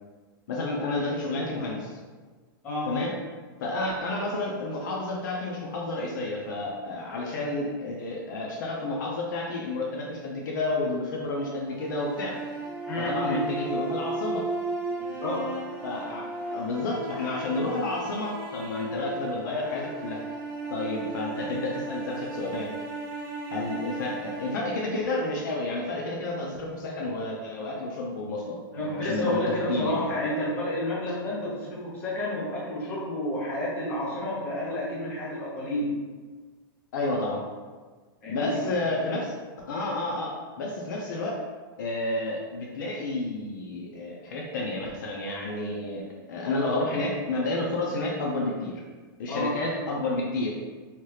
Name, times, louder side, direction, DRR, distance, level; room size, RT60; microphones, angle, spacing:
voice 1, 0.5-2.0 2.9-3.1 3.6-12.4 13.0-14.5 15.8-16.3 16.5-20.2 20.7-22.7 23.5-29.4 29.7-30.0 36.9-37.4 38.3-39.3 39.7-41.4 41.8-46.0 46.3-48.8 49.2-50.6, left 2 dB, 55° left, -2 dB, 0.5 m, -30 dB
voice 2, 2.6-3.0 12.9-13.5 15.0-15.6 28.7-36.0 38.2-38.6 39.0-39.1 49.3-49.5, left 1 dB, 15° left, -8 dB, 0.7 m, -30 dB
sound 1, 11.6-25.8, right 2 dB, 40° right, 0.6 m, -35 dB
2.9 x 2.3 x 3.2 m, 1.4 s
supercardioid pair, 175°, 12 cm